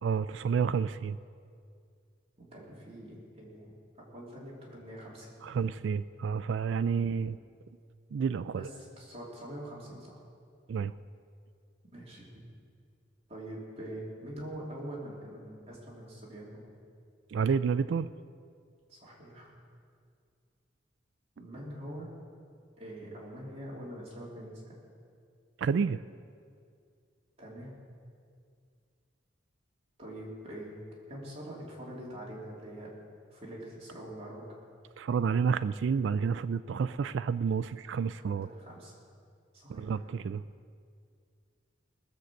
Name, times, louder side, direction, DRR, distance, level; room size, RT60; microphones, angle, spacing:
voice 1, 0.0-1.2 5.4-7.4 8.1-8.7 10.7-10.9 17.3-18.1 25.6-26.0 35.0-38.5 39.7-40.4, right 6 dB, 70° right, 13 dB, 0.3 m, -30 dB
voice 2, 2.4-3.7 4.0-5.4 6.9-7.1 8.5-8.7 9.0-10.2 11.9-12.4 13.3-16.7 18.9-19.5 21.4-22.1 22.8-24.7 27.4-27.8 30.0-30.8 31.1-32.9 33.3-34.4 38.2-38.9 39.5-40.0, right 1 dB, 30° right, -5 dB, 3.2 m, -44 dB
19.5 x 6.6 x 7.5 m, 2.2 s
head